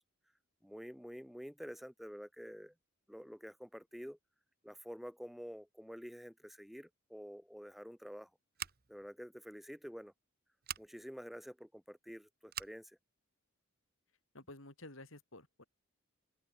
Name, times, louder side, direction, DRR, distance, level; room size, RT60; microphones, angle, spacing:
voice 1, 0.6-2.7 3.1-4.2 4.6-8.3 8.9-10.1 10.8-13.0, equal, ahead, 3.4 m, -49 dB
Scissors, 8.5-9.1 10.6-10.9 12.5-12.8, right 10 dB, 45° right, 1.5 m, -43 dB
voice 2, 14.3-15.6, left 2 dB, 65° left, 6.4 m, -52 dB
open air
head